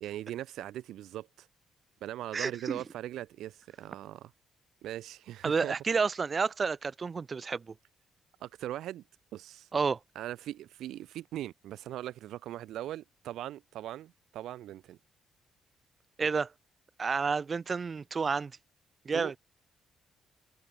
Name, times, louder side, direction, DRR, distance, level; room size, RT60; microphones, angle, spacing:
voice 1, 0.0-1.5 2.0-4.3 4.8-5.7 8.4-9.0 9.3-9.7 10.1-15.0 19.1-19.3, right 13 dB, 80° right, 1.4 m, -40 dB
voice 2, 2.3-2.8 5.4-7.7 9.7-10.0 16.2-16.5 17.0-18.5 19.1-19.3, right 5 dB, 35° right, 0.5 m, -30 dB
cardioid pair, 90°, 0 cm